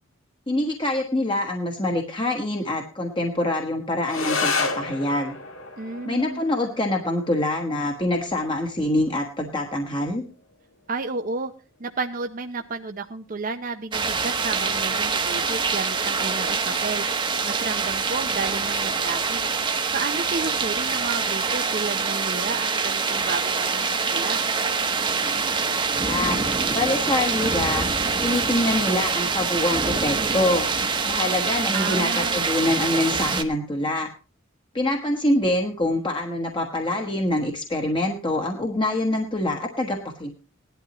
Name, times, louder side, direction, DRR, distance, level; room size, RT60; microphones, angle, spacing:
voice 1, 0.5-5.3 6.0-10.2 26.0-26.4 26.7-27.9 28.2-30.7 31.1-34.1 34.7-40.3, left 1 dB, 25° left, 2 dB, 1.3 m, -25 dB
sound 1, 4.1-13.1, left 4 dB, 80° left, 1.9 m, -33 dB
voice 2, 5.8-6.4 10.9-11.5 11.8-17.1 17.4-19.5 19.9-24.4 31.7-32.4, right 4 dB, 40° right, 6 dB, 0.7 m, -32 dB
sound 2, 13.9-33.4, right 5 dB, 25° right, 1.0 m, -25 dB
18.0 x 11.5 x 3.0 m, 0.33 s
head